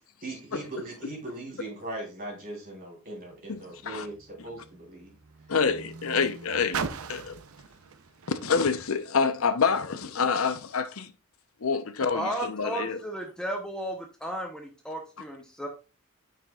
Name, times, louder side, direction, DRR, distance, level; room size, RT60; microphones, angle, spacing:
voice 1, 0.2-5.1, right 2 dB, 40° right, 3.5 m, -39 dB
Car, 3.2-9.7 10.5-10.6, right 5 dB, 75° right, 0.6 m, -41 dB
voice 2, 3.5-4.1 5.5-6.8 7.1-7.4 8.3-11.1 11.6-13.0, left 5 dB, 70° left, 0.7 m, -27 dB
voice 3, 12.1-15.7, right 1 dB, 5° left, 0.8 m, -34 dB
9.4 x 5.9 x 2.4 m
head